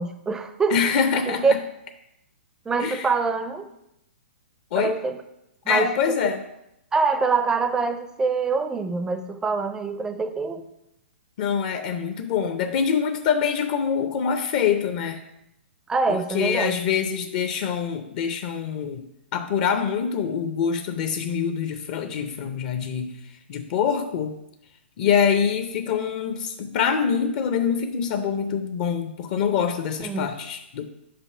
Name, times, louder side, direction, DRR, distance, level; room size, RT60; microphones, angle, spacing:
voice 1, 0.0-0.8 1.3-1.5 2.7-3.7 4.7-5.2 5.7-5.9 6.9-10.6 15.9-16.7 30.0-30.3, right 4 dB, 10° right, 9 dB, 0.4 m, -24 dB
voice 2, 0.7-1.6 2.8-3.1 4.7-5.0 5.7-6.4 11.4-15.2 16.1-19.0 19.3-24.3 25.0-30.9, left 7 dB, 40° left, 7 dB, 0.5 m, -25 dB
5.1 x 5.1 x 5.5 m, 0.84 s
hypercardioid pair, 140°, 6 cm